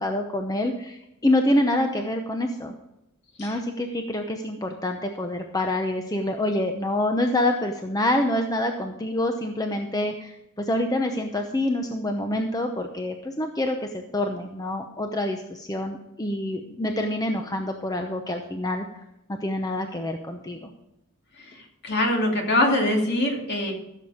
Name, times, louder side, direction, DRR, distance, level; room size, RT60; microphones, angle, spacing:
voice 1, 0.0-2.7 3.4-18.9 19.3-20.7, left 1 dB, 15° left, 4 dB, 0.8 m, -26 dB
voice 2, 21.8-23.7, left 1 dB, 55° left, 1 dB, 2.7 m, -23 dB
15.0 x 7.2 x 5.1 m, 0.87 s
head